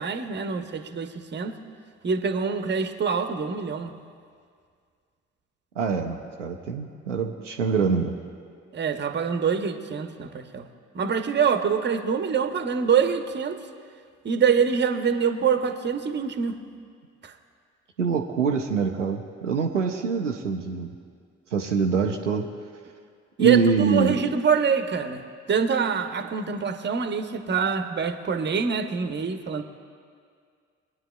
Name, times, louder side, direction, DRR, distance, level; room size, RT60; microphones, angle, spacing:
voice 1, 0.0-1.5 2.0-3.9 8.7-10.7 10.9-13.6 14.2-16.6 17.2-17.3 23.4-25.2 25.5-29.6, right 6 dB, 30° right, 8 dB, 1.0 m, -25 dB
voice 2, 5.8-8.1 18.0-20.9 21.5-22.5 23.4-24.2, right 5 dB, 90° right, 1 dB, 0.6 m, -24 dB
23.0 x 9.5 x 2.3 m, 2.1 s
figure-of-eight pair, 40°, 36 cm